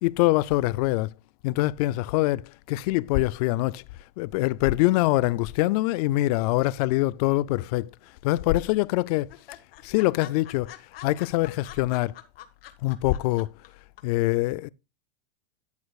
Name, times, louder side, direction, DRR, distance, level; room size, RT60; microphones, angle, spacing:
voice 1, 0.0-1.1 1.4-3.8 4.2-7.9 8.2-9.4 9.8-10.7 11.0-12.2 12.8-13.5 14.0-14.7, left 18 dB, 45° left, 0.4 m, -24 dB
sound 1, 7.6-8.3 8.5-8.6 8.9-9.0 9.3-13.7 14.0-14.1, left 13 dB, 85° left, 1.9 m, -45 dB
12.5 x 8.5 x 2.4 m
supercardioid pair, 150°, 29 cm